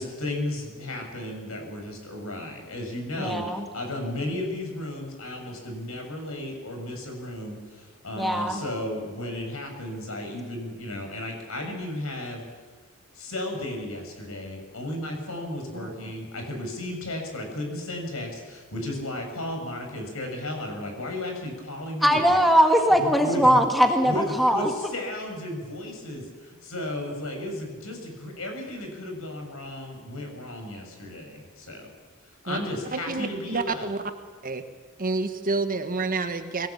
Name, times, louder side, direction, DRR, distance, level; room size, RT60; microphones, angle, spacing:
voice 1, 0.0-12.4 13.1-22.4 23.0-23.6 24.0-31.9 32.4-34.0, left 1 dB, 70° left, 3 dB, 6.7 m, -34 dB
voice 2, 3.2-3.6 8.2-8.6 22.0-24.1 24.4-24.7, equal, ahead, 3 dB, 1.9 m, -20 dB
voice 3, 15.8-16.1 32.5-32.6 32.9-34.0 34.4-34.6 35.0-36.7, right 3 dB, 40° right, 8 dB, 1.5 m, -29 dB
22.5 x 18.0 x 8.6 m, 1.4 s
head